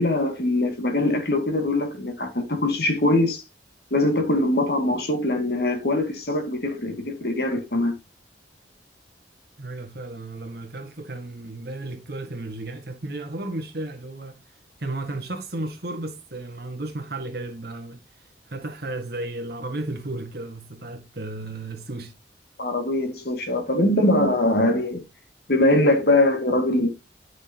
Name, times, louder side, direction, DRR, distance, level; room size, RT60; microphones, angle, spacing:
voice 1, 0.0-3.4 3.9-8.0 22.6-25.0 25.5-26.9, left 1 dB, 60° left, 2.2 m, -22 dB
voice 2, 9.6-14.4 14.8-18.0 18.5-22.1, right 2 dB, 60° right, 1.8 m, -34 dB
9.7 x 6.2 x 2.9 m
head